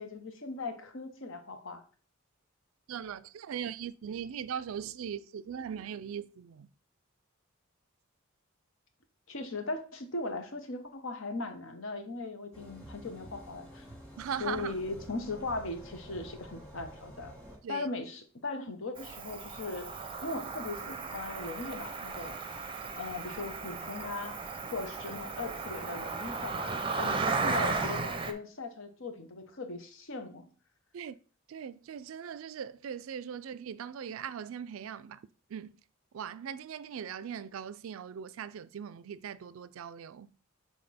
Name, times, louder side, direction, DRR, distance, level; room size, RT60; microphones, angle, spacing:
voice 1, 0.0-1.8 9.3-13.8 14.4-17.3 17.7-19.9 20.2-24.4 24.7-30.5, left 3 dB, 65° left, 1.0 m, -39 dB
voice 2, 2.9-6.7 14.2-14.7 17.6-17.9 30.9-31.2 31.5-35.2 35.5-35.8 36.1-40.3, right 8 dB, 70° right, 0.4 m, -40 dB
sound 1, 12.5-17.6, equal, 5° left, 1.7 m, -49 dB
Cricket, 19.0-28.3, right 4 dB, 25° right, 0.6 m, -35 dB
6.5 x 3.6 x 4.2 m
head